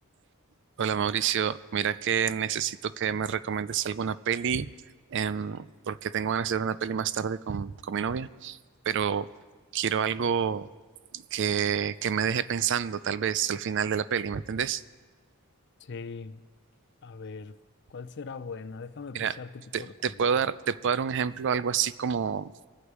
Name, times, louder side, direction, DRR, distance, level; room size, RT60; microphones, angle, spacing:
voice 1, 0.8-4.7 5.1-8.6 8.9-9.3 9.7-10.7 11.1-14.8 19.1-19.4 19.7-22.5, right 7 dB, 55° right, 16 dB, 0.4 m, -28 dB
voice 2, 15.8-16.4 17.0-17.6 17.9-19.5 20.0-20.1, left 4 dB, 55° left, 14 dB, 0.5 m, -40 dB
23.0 x 8.2 x 4.8 m, 1.4 s
head